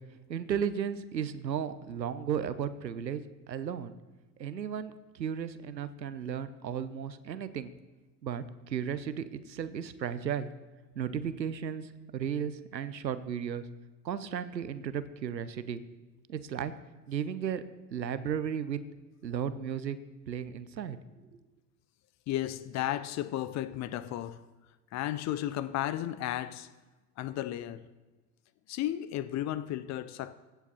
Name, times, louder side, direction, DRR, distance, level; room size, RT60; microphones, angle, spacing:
voice 1, 0.3-3.2 3.5-3.9 4.4-7.7 8.2-10.5 11.0-13.6 14.0-15.8 16.3-16.7 17.1-17.6 17.9-18.8 19.2-20.0 20.3-21.0, right 8 dB, 90° right, 0.7 m, -34 dB
voice 2, 22.3-24.4 24.9-26.7 27.2-27.9 28.7-30.3, left 13 dB, 35° left, 0.6 m, -34 dB
16.0 x 8.0 x 4.2 m
figure-of-eight pair, 70°, 50 cm